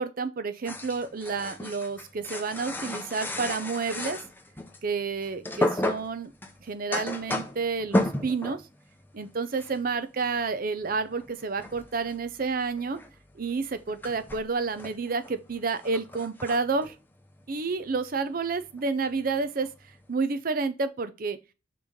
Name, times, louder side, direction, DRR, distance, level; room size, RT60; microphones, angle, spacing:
voice 1, 0.0-4.2 4.8-6.3 6.6-8.6 9.1-13.0 13.4-16.9 17.5-19.7 20.1-21.4, right 4 dB, 45° right, 0.5 m, -30 dB
sound 1, 0.6-4.9 5.2-8.7 9.0-9.3 9.6-9.9 10.2-18.2 18.5-18.8 19.1-20.1, left 1 dB, 10° left, 0.7 m, -34 dB
5.9 x 3.2 x 5.0 m
head